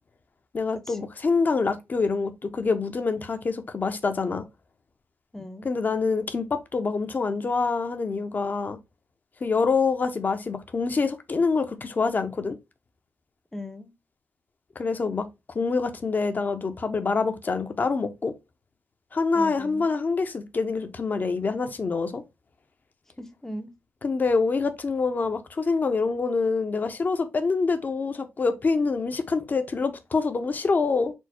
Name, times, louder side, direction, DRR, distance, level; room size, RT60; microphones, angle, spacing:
voice 1, 0.5-4.4 5.6-8.8 9.4-12.6 14.8-15.3 15.5-18.3 19.1-22.2 24.0-31.1, left 4 dB, 40° left, 0.7 m, -26 dB
voice 2, 5.3-5.7 13.5-13.9 19.3-19.9 23.2-23.7, left 1 dB, 10° left, 0.7 m, -38 dB
4.4 x 2.0 x 4.2 m
cardioid pair, 65°, 4 cm